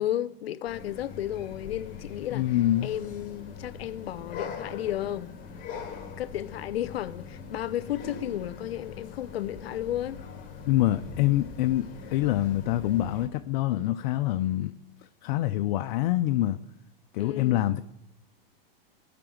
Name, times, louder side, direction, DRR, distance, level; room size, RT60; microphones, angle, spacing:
voice 1, 0.0-2.6 2.8-5.4 6.2-10.2 17.2-17.6, left 12 dB, 85° left, 0.8 m, -33 dB
sound 1, 0.7-13.3, left 6 dB, 30° left, 2.6 m, -42 dB
voice 2, 2.3-2.9 10.6-14.7 15.2-16.6 17.1-17.8, left 14 dB, 50° left, 0.6 m, -25 dB
18.0 x 6.0 x 7.8 m
supercardioid pair, 145°, 30 cm